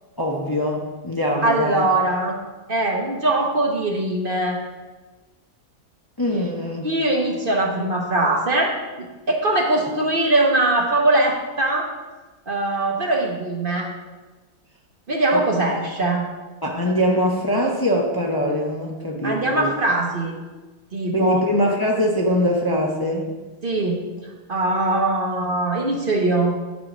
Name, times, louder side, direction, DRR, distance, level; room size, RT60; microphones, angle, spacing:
voice 1, 0.2-1.9 6.2-6.9 15.3-15.4 16.6-19.7 21.1-23.3, equal, 20° left, -1 dB, 0.8 m, -22 dB
voice 2, 1.4-2.4 2.7-4.6 6.8-8.7 9.3-11.9 12.5-13.9 15.1-16.3 19.2-20.3 20.9-21.4 23.6-26.5, right 2 dB, 40° right, 1 dB, 1.1 m, -21 dB
9.2 x 4.6 x 6.2 m, 1.2 s
omnidirectional pair, 1.5 m